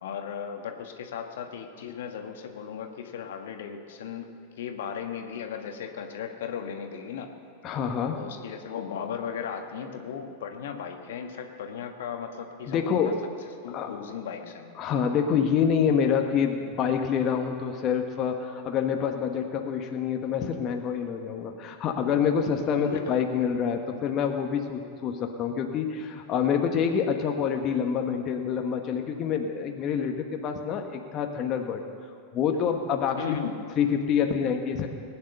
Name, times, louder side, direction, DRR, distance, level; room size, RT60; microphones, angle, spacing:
voice 1, 0.0-4.3 4.6-7.3 8.2-13.1 13.6-14.7 22.8-23.2 33.2-33.6, left 7 dB, 70° left, 5 dB, 1.5 m, -36 dB
voice 2, 7.6-8.2 12.7-13.2 13.7-13.9 14.8-31.8 32.3-33.2 33.8-34.9, left 7 dB, 40° left, 4 dB, 1.3 m, -27 dB
20.0 x 9.4 x 6.6 m, 2.3 s
hypercardioid pair, 90°, 0 cm